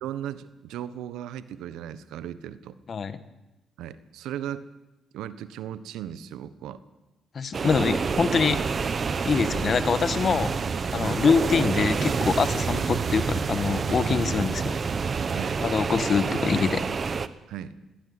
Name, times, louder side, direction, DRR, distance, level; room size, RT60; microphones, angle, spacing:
voice 1, 0.0-2.8 3.8-4.7 5.1-6.8 9.3-9.5 11.0-11.2 14.4-14.6 15.3-15.6 17.5-17.8, right 10 dB, 90° right, 14 dB, 1.2 m, -37 dB
voice 2, 7.3-9.0 9.2-10.6 10.9-14.7 15.6-16.9, left 5 dB, 50° left, 13 dB, 1.7 m, -25 dB
sound 1, 7.5-17.3, right 5 dB, 45° right, 1.1 m, -27 dB
21.5 x 16.5 x 9.7 m, 1.0 s
cardioid pair, 75°, 0 cm